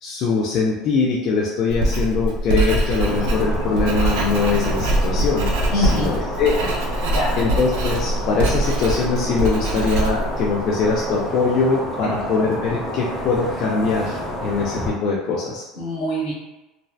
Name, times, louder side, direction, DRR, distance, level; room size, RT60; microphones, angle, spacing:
voice 1, 0.0-15.6, left 4 dB, 45° left, -4 dB, 0.4 m, -22 dB
Writing, 1.7-11.1, right 1 dB, 85° right, 0.4 m, -23 dB
sound 1, 3.0-14.9, equal, ahead, 0.8 m, -29 dB
voice 2, 5.7-6.1 7.0-7.4 15.8-16.3, left 1 dB, 80° left, -5 dB, 1.2 m, -24 dB
2.6 x 2.0 x 2.3 m, 1.0 s
cardioid pair, 155°, 0 cm